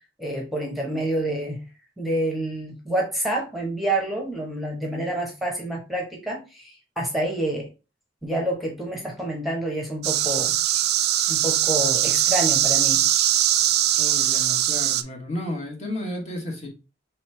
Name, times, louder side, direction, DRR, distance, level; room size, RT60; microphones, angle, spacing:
voice 1, 0.2-1.6 2.0-7.7 8.2-10.6 11.3-13.0, right 1 dB, ahead, 0.9 m, -28 dB
sound 1, 10.0-15.0, right 12 dB, 60° right, 0.3 m, -21 dB
voice 2, 13.9-16.7, left 1 dB, 35° left, 1.2 m, -32 dB
3.2 x 3.1 x 4.3 m
head